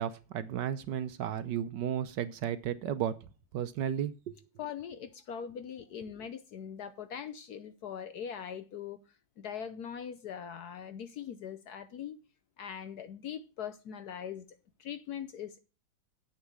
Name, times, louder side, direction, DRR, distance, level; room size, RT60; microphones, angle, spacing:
voice 1, 0.0-3.2 3.5-4.4, right 9 dB, 70° right, 1.2 m, -34 dB
voice 2, 4.6-9.0 9.4-12.2 12.6-14.4 14.8-15.6, left 8 dB, 65° left, 1.1 m, -41 dB
8.4 x 6.7 x 6.1 m
omnidirectional pair, 2.2 m